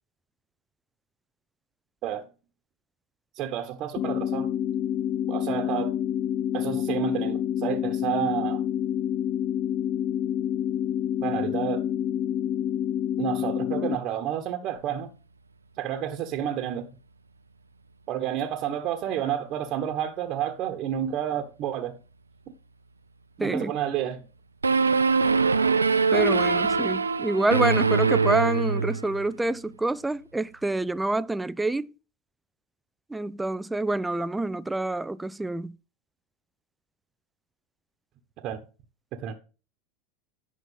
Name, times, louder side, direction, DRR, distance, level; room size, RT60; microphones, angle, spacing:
voice 1, 3.4-4.5 5.3-5.9 6.5-8.6 11.2-11.8 13.2-15.1 15.8-16.9 18.1-22.0 23.4-24.2 38.4-38.6 39.2-39.3, right 10 dB, 45° right, 1.3 m, -30 dB
sound 1, 4.0-14.0, left 10 dB, 40° left, 0.6 m, -28 dB
voice 2, 23.4-23.7 26.1-31.9 33.1-35.7, right 2 dB, 10° right, 0.5 m, -27 dB
sound 2, 24.6-29.3, right 4 dB, 85° right, 0.6 m, -23 dB
11.0 x 5.9 x 5.3 m
figure-of-eight pair, 80°, 0 cm